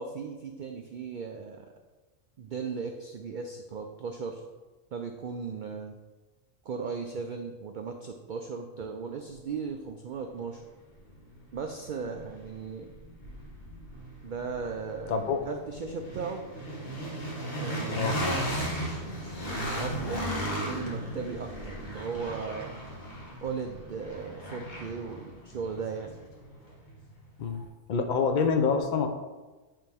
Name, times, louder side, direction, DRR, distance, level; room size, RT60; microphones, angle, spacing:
voice 1, 0.0-1.7 2.4-4.4 4.9-6.0 6.6-10.6 11.5-12.9 14.2-15.1 15.5-16.4 17.6-18.1 18.6-22.7 23.4-26.1, right 5 dB, 85° right, 4 dB, 0.4 m, -37 dB
sound 1, 10.5-10.6 11.1-27.1, equal, 35° left, 1.4 m, -36 dB
voice 2, 27.4-29.1, left 5 dB, 60° left, 6 dB, 0.4 m, -26 dB
8.7 x 3.3 x 3.4 m, 1.2 s
omnidirectional pair, 1.4 m